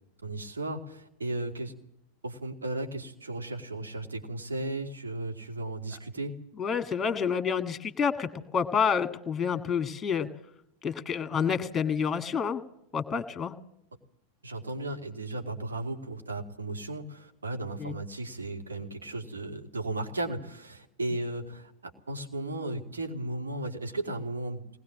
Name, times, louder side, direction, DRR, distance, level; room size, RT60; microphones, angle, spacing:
voice 1, 0.2-1.8 2.2-6.3 14.4-21.7 22.1-24.6, right 2 dB, 75° right, 4 dB, 2.7 m, -35 dB
voice 2, 6.6-10.3 10.8-12.6 12.9-13.5 17.8-18.0, left 6 dB, 15° left, 10 dB, 1.8 m, -28 dB
21.0 x 19.5 x 7.5 m, 0.77 s
figure-of-eight pair, 90°, 0 cm